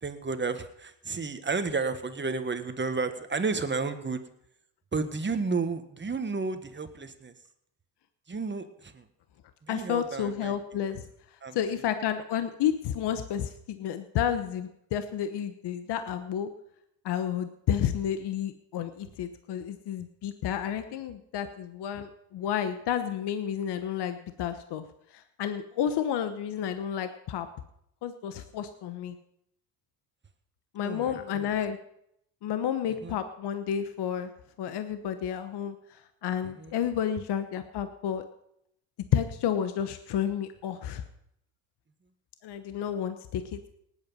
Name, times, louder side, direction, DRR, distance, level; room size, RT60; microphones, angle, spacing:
voice 1, 0.0-4.2 4.9-7.3 8.3-9.1 9.6-10.8 11.4-11.6 30.8-31.5 32.9-33.1 36.4-36.7, right 4 dB, 25° right, 9 dB, 1.6 m, -32 dB
voice 2, 9.7-11.0 11.5-16.5 17.0-24.8 25.1-27.5 28.0-29.1 30.7-31.8 32.4-34.3 34.6-38.2 39.1-41.0 42.4-43.7, left 9 dB, 55° left, 9 dB, 1.1 m, -31 dB
18.5 x 8.6 x 5.6 m, 0.75 s
supercardioid pair, 75°, 48 cm